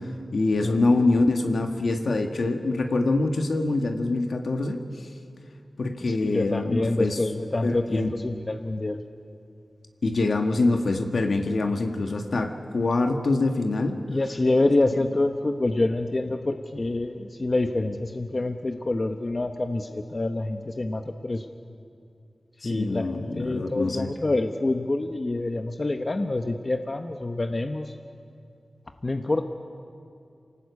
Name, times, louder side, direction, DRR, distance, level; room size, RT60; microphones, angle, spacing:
voice 1, 0.3-4.8 5.8-7.2 7.6-8.1 10.0-14.0 22.6-24.1, left 2 dB, 75° left, 4 dB, 1.9 m, -24 dB
voice 2, 6.1-9.0 14.1-21.5 22.6-28.0 29.0-29.4, left 2 dB, 40° left, 6 dB, 1.1 m, -26 dB
27.5 x 18.5 x 8.4 m, 2.5 s
wide cardioid pair, 75°, 0 cm